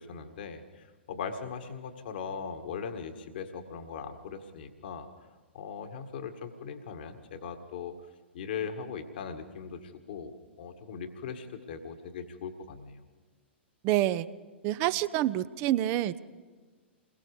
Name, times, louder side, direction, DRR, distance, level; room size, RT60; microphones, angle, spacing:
voice 1, 0.0-5.1 5.5-7.9 8.3-13.0, left 6 dB, 55° left, 6 dB, 1.8 m, -39 dB
voice 2, 13.8-14.3 14.6-16.2, right 14 dB, 35° right, 15 dB, 0.8 m, -27 dB
29.0 x 22.0 x 5.1 m, 1.4 s
figure-of-eight pair, 105°, 6 cm